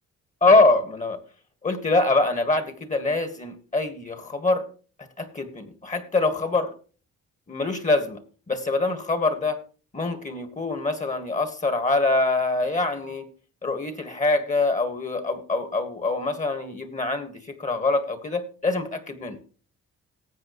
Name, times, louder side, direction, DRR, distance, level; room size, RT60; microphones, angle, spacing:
voice 1, 0.4-1.2 1.6-4.7 5.2-6.7 7.5-8.2 8.5-9.6 9.9-13.3 13.6-19.4, left 3 dB, 25° left, 9 dB, 1.7 m, -24 dB
18.5 x 7.7 x 3.1 m, 0.39 s
cardioid pair, 90°, 30 cm